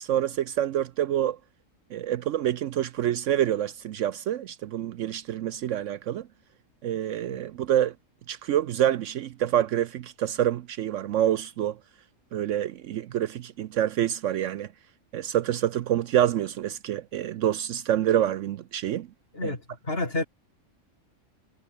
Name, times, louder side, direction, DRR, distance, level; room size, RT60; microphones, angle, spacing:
voice 1, 0.0-1.4 1.9-6.3 6.8-7.9 8.3-11.8 12.3-14.7 15.1-19.1 19.4-19.5, right 11 dB, 70° right, 0.9 m, -27 dB
voice 2, 19.3-20.2, left 2 dB, 45° left, 4.3 m, -30 dB
omnidirectional pair, 1.4 m